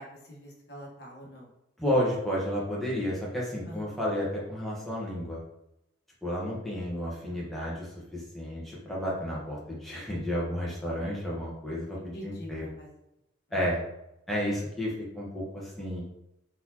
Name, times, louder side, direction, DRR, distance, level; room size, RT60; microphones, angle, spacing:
voice 1, 0.0-1.5 3.6-3.9 7.0-7.7 12.1-12.9 13.5-13.6, equal, 55° left, -2 dB, 1.2 m, -46 dB
voice 2, 1.8-5.4 6.2-12.7 13.5-13.8 14.3-16.0, equal, ahead, -6 dB, 1.1 m, -32 dB
4.3 x 4.2 x 2.8 m, 0.85 s
head